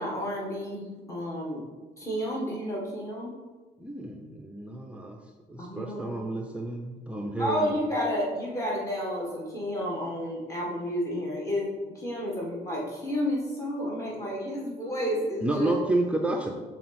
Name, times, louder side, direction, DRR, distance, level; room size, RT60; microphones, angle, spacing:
voice 1, 0.0-1.6 2.0-3.3 5.6-6.2 7.4-15.8, equal, 15° left, -4 dB, 1.7 m, -31 dB
voice 2, 3.8-5.2 5.5-7.8 15.4-16.5, right 2 dB, 5° right, 1 dB, 0.6 m, -30 dB
6.5 x 3.9 x 4.2 m, 1.3 s
cardioid pair, 110°, 17 cm